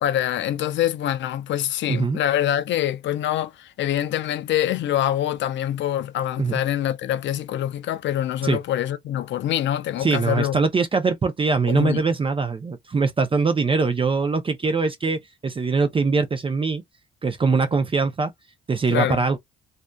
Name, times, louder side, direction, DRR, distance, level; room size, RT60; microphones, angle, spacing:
voice 1, 0.0-10.6 11.7-12.0 18.9-19.2, left 11 dB, 70° left, 0.4 m, -25 dB
voice 2, 1.9-2.2 6.4-6.6 8.4-8.6 10.0-16.8 17.2-18.3 18.7-19.4, right 4 dB, 25° right, 0.5 m, -22 dB
2.5 x 2.2 x 2.2 m
cardioid pair, 90°, 20 cm